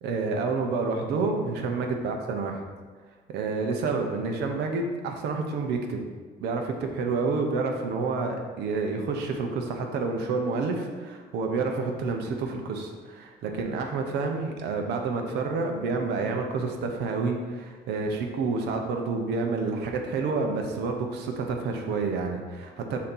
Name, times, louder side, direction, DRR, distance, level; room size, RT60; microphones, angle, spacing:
voice 1, 0.0-2.5 3.3-6.0 6.4-23.0, right 4 dB, 80° right, 3 dB, 0.8 m, -29 dB
6.4 x 2.8 x 5.5 m, 1.5 s
cardioid pair, 110°, 17 cm